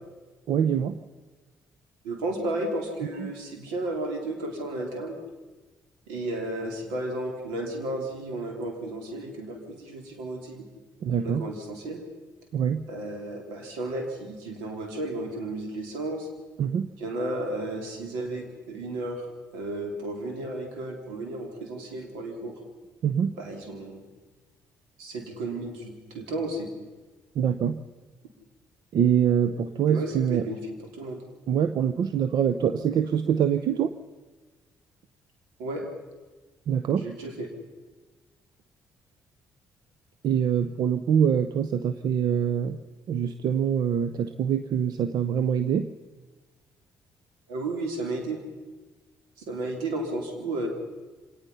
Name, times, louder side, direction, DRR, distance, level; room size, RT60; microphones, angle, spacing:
voice 1, 0.5-0.9 3.2-3.3 11.0-11.5 12.5-12.8 16.6-16.9 23.0-23.3 27.4-27.8 28.9-30.5 31.5-33.9 36.7-37.1 40.2-42.8 43.1-45.9, right 8 dB, 65° right, 11 dB, 0.8 m, -24 dB
voice 2, 2.0-5.2 6.1-10.7 11.2-12.0 12.9-16.3 17.0-19.2 19.5-22.6 23.3-24.0 25.0-26.7 29.9-30.6 30.9-31.2 35.6-35.8 37.0-37.5 47.5-48.4 49.5-50.7, right 2 dB, 90° right, 2 dB, 3.5 m, -33 dB
25.0 x 18.5 x 5.6 m, 1.3 s
supercardioid pair, 60°, 7 cm